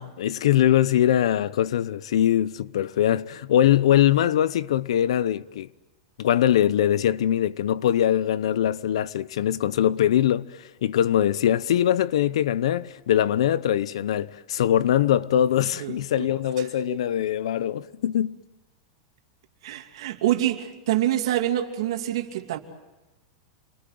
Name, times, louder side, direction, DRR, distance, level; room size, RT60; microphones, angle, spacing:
voice 1, 0.2-5.7 6.2-18.4, left 11 dB, 80° left, 0.8 m, -22 dB
voice 2, 19.6-22.6, right 13 dB, 65° right, 2.7 m, -26 dB
27.5 x 22.0 x 7.8 m
supercardioid pair, 170°, 3 cm